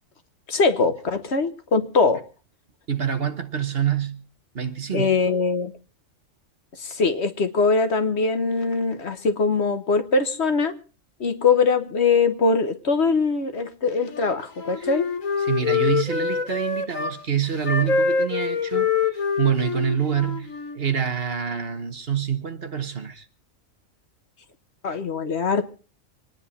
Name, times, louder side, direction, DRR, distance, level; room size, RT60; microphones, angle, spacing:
voice 1, 0.5-2.2 4.9-5.7 6.7-10.7 11.2-15.0 24.8-25.6, left 4 dB, 55° left, 1.4 m, -22 dB
voice 2, 2.9-4.2 4.5-5.2 14.8-14.9 15.4-23.3, right 8 dB, 50° right, 1.4 m, -26 dB
Wind instrument woodwind instrument, 14.0-17.2 17.6-20.8, left 5 dB, 90° left, 2.0 m, -25 dB
26.5 x 10.0 x 4.1 m
omnidirectional pair, 1.4 m